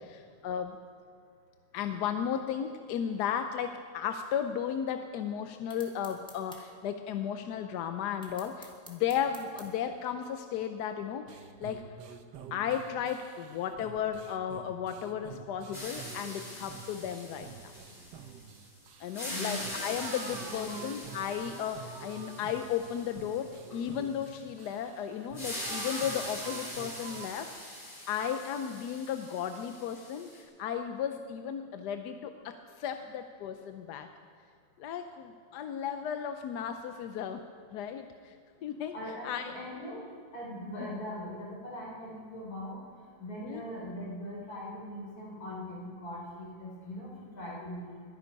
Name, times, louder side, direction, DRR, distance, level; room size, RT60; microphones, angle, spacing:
voice 1, 0.4-0.8 1.7-12.2 12.5-17.7 19.0-34.1 34.8-37.4 37.7-38.4 38.6-38.9 39.2-39.5 43.4-43.6, left 8 dB, 70° left, 7 dB, 1.1 m, -35 dB
sound 1, 5.7-6.6 8.2-9.7, equal, 5° left, 1.6 m, -50 dB
sound 2, 11.3-27.3, right 7 dB, 70° right, 1.3 m, -48 dB
sound 3, 15.7-18.7 19.0-23.8 25.3-30.4, left 1 dB, 25° left, 3.6 m, -42 dB
voice 2, 19.2-19.6 20.4-20.8 38.9-40.0 40.3-42.8 43.2-48.0, left 1 dB, 50° left, -4 dB, 4.4 m, -41 dB
22.0 x 9.8 x 5.3 m, 2.1 s
omnidirectional pair, 2.1 m